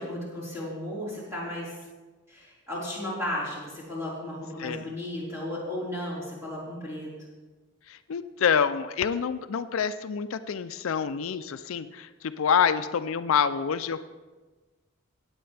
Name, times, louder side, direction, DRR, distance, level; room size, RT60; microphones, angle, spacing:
voice 1, 0.0-1.8 2.3-7.1, left 1 dB, 15° right, -8 dB, 4.4 m, -34 dB
voice 2, 7.9-14.0, left 7 dB, 70° left, 12 dB, 0.4 m, -27 dB
17.0 x 8.8 x 3.4 m, 1.3 s
head